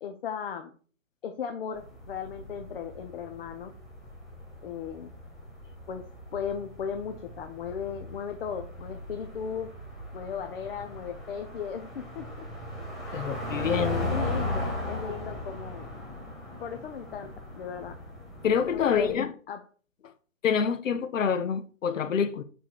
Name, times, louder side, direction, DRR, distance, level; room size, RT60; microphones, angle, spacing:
voice 1, 0.0-0.7 1.2-3.7 4.6-5.1 5.9-6.0 6.3-9.7 10.1-12.3 13.1-15.9 16.6-18.0 18.5-19.2 19.5-19.6, left 7 dB, 45° left, 0.8 m, -36 dB
sound 1, 1.7-19.2, left 1 dB, ahead, 1.8 m, -38 dB
voice 2, 13.1-14.1 18.4-19.3 20.4-22.4, left 7 dB, 65° left, 1.0 m, -27 dB
5.9 x 4.6 x 4.8 m
hypercardioid pair, 140°, 41 cm